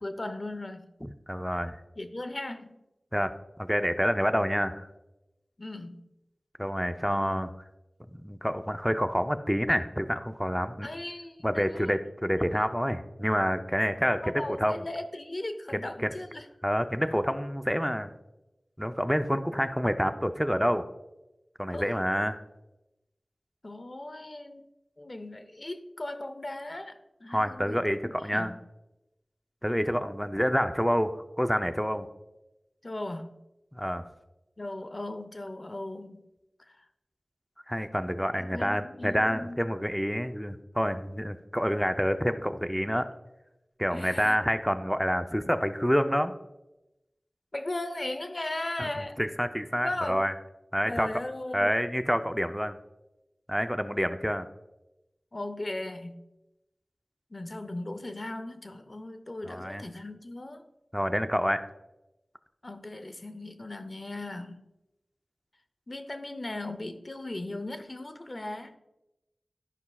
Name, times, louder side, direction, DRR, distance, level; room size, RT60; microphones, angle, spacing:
voice 1, 0.0-0.9 2.0-2.8 5.6-6.0 10.8-12.0 14.2-16.5 21.7-22.0 23.6-24.7 25.0-28.6 32.8-33.3 34.6-36.2 36.6-36.9 38.4-39.6 43.9-44.4 47.5-49.2 49.8-50.3 50.8-51.7 55.3-56.2 57.3-60.6 62.6-64.6 65.9-68.8, left 1 dB, 50° left, 8 dB, 0.6 m, -37 dB
voice 2, 1.0-1.8 3.1-3.3 3.6-4.9 6.6-7.5 8.2-10.9 11.4-14.2 14.5-14.8 15.7-16.1 16.6-18.1 18.8-20.8 21.6-22.4 27.3-28.5 29.6-32.1 33.7-34.0 37.7-43.1 43.8-46.3 48.8-48.9 49.2-50.3 50.7-51.1 51.5-52.8 53.5-54.5 59.5-59.8 60.9-61.7, equal, ahead, 9 dB, 0.5 m, -28 dB
12.5 x 5.5 x 2.3 m, 0.94 s
wide cardioid pair, 45°, 0 cm